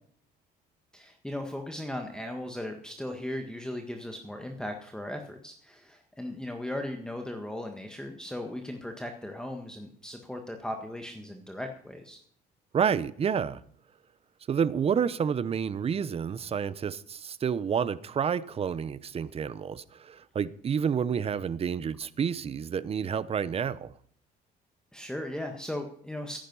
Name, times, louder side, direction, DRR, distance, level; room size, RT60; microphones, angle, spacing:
voice 1, 0.9-12.2 24.9-26.4, left 1 dB, 5° left, 1.6 m, -37 dB
voice 2, 12.7-13.6 14.5-23.9, right 7 dB, 35° right, 0.8 m, -29 dB
14.5 x 10.5 x 5.6 m
cardioid pair, 110°, 17 cm